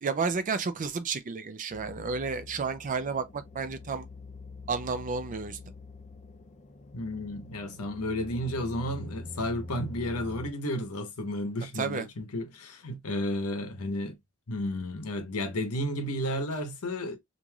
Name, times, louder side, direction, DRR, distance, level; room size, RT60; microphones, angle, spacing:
voice 1, 0.0-4.1 4.7-5.6 11.8-12.1, right 5 dB, 35° right, 0.4 m, -31 dB
sound 1, 1.7-10.5, left 2 dB, 30° left, 0.5 m, -45 dB
voice 2, 6.9-14.2 14.5-17.2, left 1 dB, 75° left, 0.8 m, -32 dB
3.2 x 2.6 x 2.2 m
head